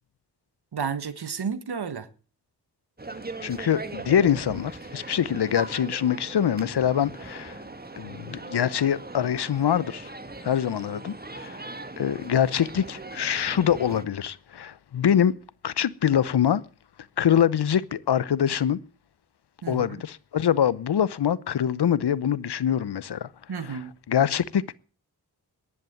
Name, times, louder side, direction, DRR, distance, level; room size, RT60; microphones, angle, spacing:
voice 1, 0.7-2.1 19.6-20.0 23.5-23.9, right 6 dB, 70° right, 1.5 m, -32 dB
sound 1, 3.0-14.0, right 2 dB, 25° right, 1.5 m, -40 dB
voice 2, 3.4-7.6 8.0-10.1 10.4-11.6 12.0-15.4 15.6-16.6 17.2-18.8 19.7-23.3 23.6-24.8, left 9 dB, 75° left, 0.8 m, -24 dB
11.0 x 9.7 x 9.3 m
cardioid pair, 45°, 40 cm